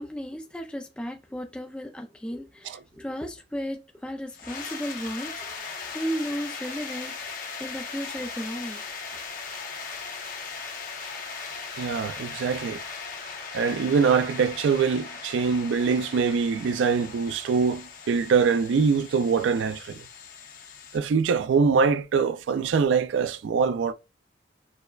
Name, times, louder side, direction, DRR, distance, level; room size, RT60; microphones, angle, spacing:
voice 1, 0.0-8.8, equal, 5° left, 0.3 m, -35 dB
sound 1, 4.3-21.0, left 5 dB, 50° left, 0.9 m, -39 dB
voice 2, 11.8-12.8 13.5-20.0 20.9-23.9, right 5 dB, 85° right, 0.3 m, -23 dB
6.4 x 2.1 x 2.3 m
head